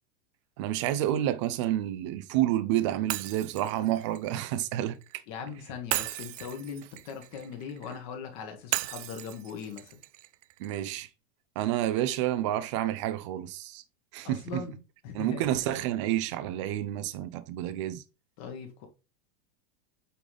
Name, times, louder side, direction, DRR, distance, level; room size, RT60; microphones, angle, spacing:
voice 1, 0.6-5.0 10.6-11.1 11.6-13.8 14.1-14.6 15.1-18.0, right 13 dB, 25° right, 0.3 m, -29 dB
Shatter, 3.1-5.2 5.9-8.0 8.7-10.8, right 17 dB, 80° right, 0.5 m, -36 dB
voice 2, 5.3-10.0 14.2-15.5 18.4-18.9, left 6 dB, 40° left, 1.5 m, -40 dB
8.4 x 3.9 x 3.4 m
supercardioid pair, 170°, 37 cm